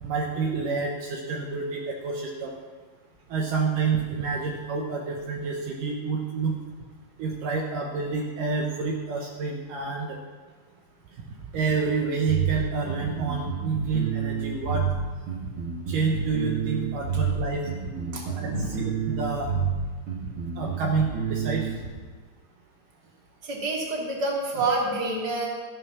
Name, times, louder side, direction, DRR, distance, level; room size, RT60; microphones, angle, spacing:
voice 1, 0.0-2.6 3.3-6.6 7.2-10.2 11.2-14.9 15.9-19.5 20.6-21.7, right 4 dB, 85° right, 0 dB, 1.8 m, -29 dB
sound 1, 12.3-21.9, right 6 dB, 45° right, 1.8 m, -29 dB
voice 2, 18.1-18.9 23.4-25.5, right 2 dB, 30° right, -3 dB, 2.1 m, -28 dB
13.5 x 9.9 x 6.0 m, 1.5 s
omnidirectional pair, 5.5 m